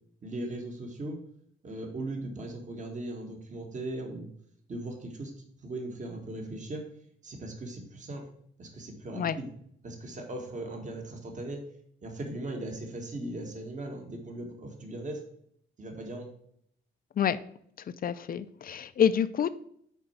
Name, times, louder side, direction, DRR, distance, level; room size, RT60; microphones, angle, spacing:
voice 1, 0.2-1.2 1.6-4.3 4.7-5.3 5.6-6.9 7.2-8.3 8.6-9.5 9.8-11.6 12.0-15.2 15.8-16.3, right 1 dB, 40° right, 2 dB, 1.8 m, -38 dB
voice 2, 18.0-19.5, left 8 dB, 45° left, 13 dB, 0.6 m, -27 dB
6.7 x 4.5 x 5.7 m, 0.67 s
cardioid pair, 90°, 20 cm